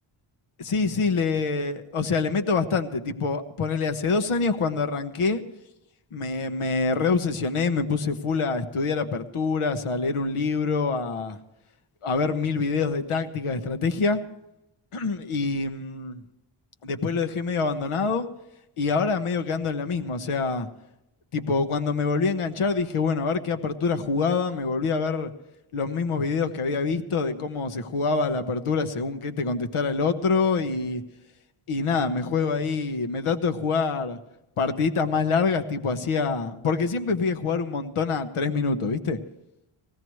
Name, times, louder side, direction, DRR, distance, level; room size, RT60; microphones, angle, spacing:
voice 1, 0.6-5.4 6.1-11.4 12.0-14.2 14.9-16.2 16.8-18.3 18.8-20.7 21.3-25.3 25.7-31.0 31.7-34.2 34.6-39.2, left 4 dB, 85° left, 8 dB, 1.1 m, -25 dB
20.0 x 16.0 x 3.1 m, 0.86 s
wide cardioid pair, 120°, 50 cm